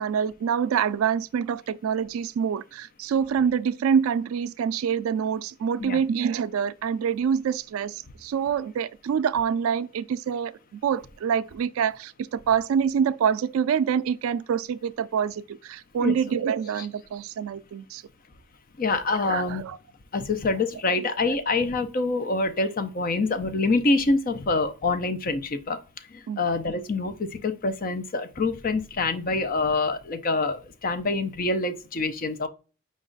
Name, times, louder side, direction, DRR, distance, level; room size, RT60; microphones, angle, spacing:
voice 1, 0.0-18.0 19.1-19.8 26.3-26.4, right 7 dB, 75° right, 0.3 m, -26 dB
voice 2, 18.8-19.6 20.1-25.8 26.1-32.5, left 3 dB, 40° left, 0.5 m, -26 dB
5.1 x 2.4 x 3.8 m
head